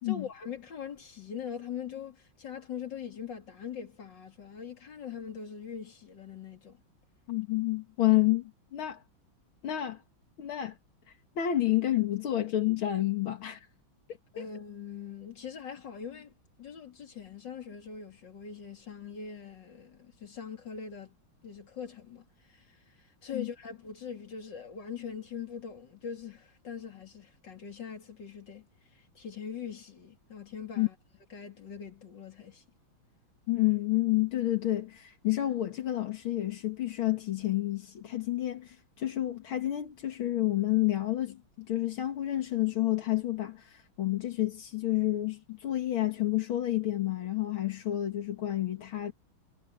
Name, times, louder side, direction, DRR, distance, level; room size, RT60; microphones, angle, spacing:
voice 1, 0.0-6.8 14.3-21.2 21.4-28.7 28.9-30.9 31.3-32.6, left 7 dB, 60° left, 3.5 m, -42 dB
voice 2, 7.3-9.0 9.6-10.0 10.4-10.8 11.4-13.7 14.4-14.5 23.3-23.5 30.8-30.9 33.5-49.1, left 14 dB, 80° left, 2.5 m, -29 dB
omnidirectional pair, 2.2 m